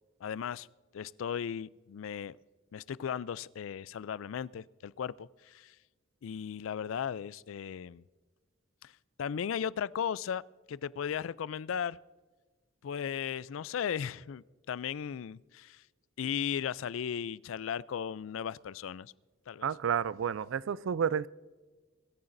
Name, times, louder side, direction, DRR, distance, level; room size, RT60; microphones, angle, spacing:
voice 1, 0.2-0.7 0.9-2.4 2.7-5.7 6.2-8.0 8.8-8.9 9.2-10.4 10.7-12.0 12.8-15.8 16.2-19.1 19.5-19.7, left 8 dB, 80° left, 0.4 m, -36 dB
voice 2, 19.6-21.3, right 7 dB, 75° right, 0.4 m, -30 dB
22.5 x 13.5 x 2.6 m
head